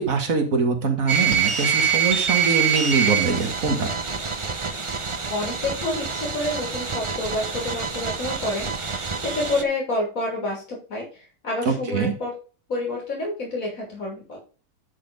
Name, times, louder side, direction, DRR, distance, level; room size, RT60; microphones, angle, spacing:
voice 1, 0.0-3.9 11.7-12.1, right 4 dB, 70° right, 5 dB, 2.1 m, -23 dB
sound 1, 1.1-9.6, right 6 dB, 25° right, 0.7 m, -25 dB
voice 2, 5.3-12.3 12.7-14.4, left 2 dB, 70° left, -2 dB, 3.7 m, -29 dB
10.5 x 4.3 x 5.2 m, 0.36 s
omnidirectional pair, 1.5 m